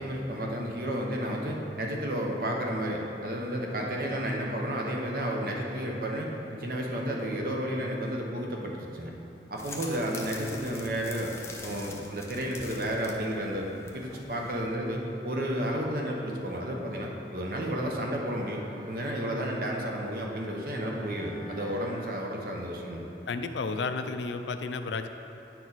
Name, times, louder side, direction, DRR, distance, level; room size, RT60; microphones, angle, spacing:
voice 1, 0.0-9.1 9.5-11.3 11.6-13.7 13.9-23.0, equal, 50° right, -1 dB, 0.9 m, -32 dB
sound 1, 9.6-14.6, left 3 dB, 15° left, 0.5 m, -44 dB
Bowed string instrument, 18.1-23.1, right 3 dB, 5° right, 1.0 m, -49 dB
voice 2, 23.3-25.1, left 4 dB, 80° left, 8 dB, 0.4 m, -32 dB
9.9 x 4.6 x 4.1 m, 2.9 s
head